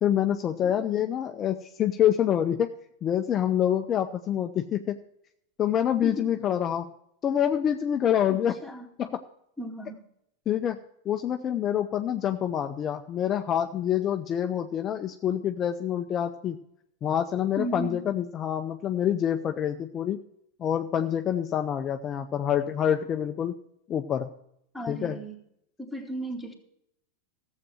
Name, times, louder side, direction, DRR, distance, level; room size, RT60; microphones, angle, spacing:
voice 1, 0.0-2.7 3.0-5.0 5.6-6.9 7.2-8.5 9.0-9.2 10.5-10.8 11.1-16.6 17.0-20.2 20.6-23.5 23.9-24.3 24.9-25.2, left 10 dB, 35° left, 6 dB, 0.6 m, -26 dB
voice 2, 8.3-8.9 9.6-10.0 17.6-18.0 24.7-25.4 25.8-26.5, right 1 dB, ahead, -1 dB, 2.2 m, -35 dB
14.0 x 7.5 x 6.2 m, 0.76 s
hypercardioid pair, 100°, 0 cm